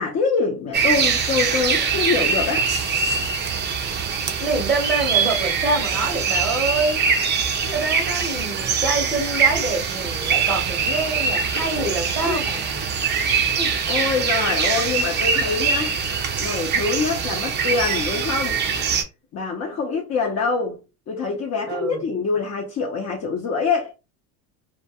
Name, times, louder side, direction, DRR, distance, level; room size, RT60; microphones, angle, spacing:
voice 1, 0.0-2.6 12.3-12.4 13.1-13.4 13.9-15.9 16.4-18.6 19.3-20.8 21.1-23.9, left 4 dB, 35° left, 0.6 m, -25 dB
sound 1, 0.7-19.0, right 6 dB, 25° right, 0.4 m, -23 dB
voice 2, 4.4-7.0 7.6-12.9 13.6-13.9 21.7-22.0, right 3 dB, ahead, 0.7 m, -26 dB
2.2 x 2.2 x 2.7 m
supercardioid pair, 120°, 41 cm